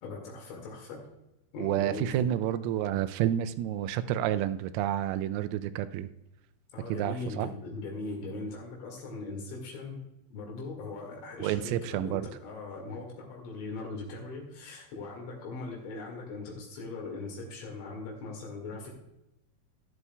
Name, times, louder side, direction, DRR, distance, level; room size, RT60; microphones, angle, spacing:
voice 1, 0.0-1.0 1.5-2.3 6.7-10.0 10.3-18.9, left 3 dB, 70° left, -1 dB, 4.3 m, -40 dB
voice 2, 1.6-6.1 6.9-7.5 11.4-12.3, right 12 dB, 85° right, 11 dB, 3.3 m, -29 dB
12.5 x 12.5 x 2.3 m, 0.91 s
omnidirectional pair, 6.0 m